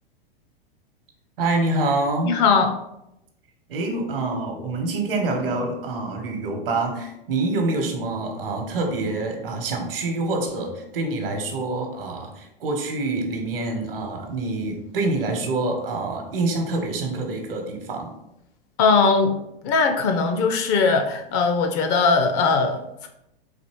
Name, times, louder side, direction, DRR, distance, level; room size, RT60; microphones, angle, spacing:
voice 1, 1.4-2.4 3.7-18.1, right 2 dB, 70° right, 3 dB, 1.0 m, -26 dB
voice 2, 2.2-2.7 18.8-19.4 19.6-23.1, left 4 dB, 35° left, 5 dB, 0.5 m, -20 dB
4.1 x 2.8 x 2.9 m, 0.85 s
figure-of-eight pair, 95°, 29 cm